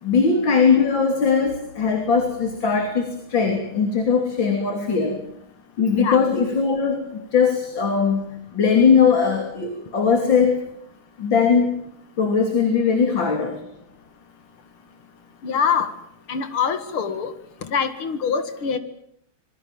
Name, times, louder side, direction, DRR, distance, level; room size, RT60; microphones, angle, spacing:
voice 1, 0.0-5.2 5.8-10.6 11.2-11.7 12.2-13.6, left 5 dB, 60° left, 5 dB, 3.8 m, -20 dB
voice 2, 15.4-15.9 16.3-17.3 17.6-18.8, left 6 dB, 80° left, 11 dB, 2.7 m, -24 dB
26.5 x 22.5 x 7.4 m, 0.70 s
omnidirectional pair, 2.3 m